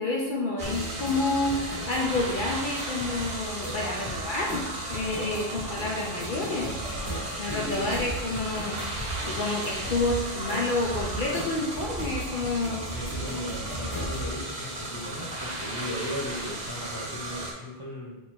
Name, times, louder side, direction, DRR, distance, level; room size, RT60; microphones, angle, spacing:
voice 1, 0.0-4.6 4.9-6.8 7.4-12.8, left 2 dB, 55° left, -2 dB, 0.7 m, -29 dB
sound 1, 0.6-14.3, left 1 dB, 30° left, 1.8 m, -39 dB
sound 2, 0.6-17.5, right 1 dB, 45° right, 0.9 m, -35 dB
sound 3, 6.8-7.3 7.7-8.3 8.7-9.3 9.7-10.3 10.7-11.3 11.7-12.3 12.7-13.3 13.7-14.3, right 3 dB, 85° right, 1.0 m, -38 dB
voice 2, 7.1-7.9 12.9-18.2, left 1 dB, 20° right, -6 dB, 1.1 m, -37 dB
4.6 x 2.6 x 4.3 m, 1.1 s
omnidirectional pair, 1.1 m